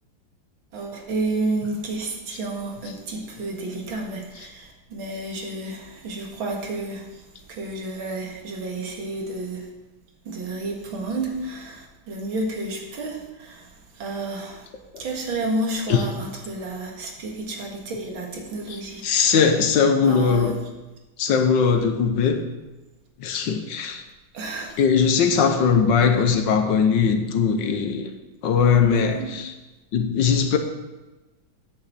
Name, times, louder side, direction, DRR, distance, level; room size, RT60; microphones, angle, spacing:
voice 1, 0.7-7.1 7.5-9.7 10.3-13.6 14.0-14.6 15.0-19.3 20.1-20.5 24.3-24.8 28.8-29.3, right 2 dB, 80° right, 1 dB, 2.5 m, -31 dB
voice 2, 18.7-20.6 21.2-22.4 23.2-24.0 24.8-28.1 28.4-29.5 29.9-30.6, left 6 dB, 70° left, 6 dB, 1.5 m, -20 dB
8.5 x 6.7 x 7.5 m, 1.1 s
omnidirectional pair, 2.2 m